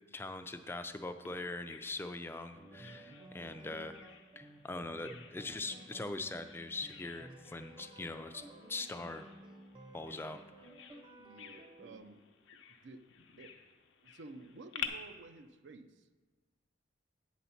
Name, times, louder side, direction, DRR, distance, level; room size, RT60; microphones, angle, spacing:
voice 1, 0.1-3.9 4.4-9.3 9.9-10.4, left 2 dB, 10° left, 8 dB, 0.3 m, -42 dB
Bird vocalization bird call bird song, 1.3-14.9, left 9 dB, 80° left, 0.6 m, -51 dB
sound 1, 2.6-12.0, right 1 dB, 25° right, 0.7 m, -54 dB
voice 2, 11.2-12.2 12.5-13.0 13.4-13.6 14.0-16.1, right 3 dB, 70° right, 10 dB, 0.5 m, -52 dB
8.4 x 4.1 x 5.7 m, 1.3 s
head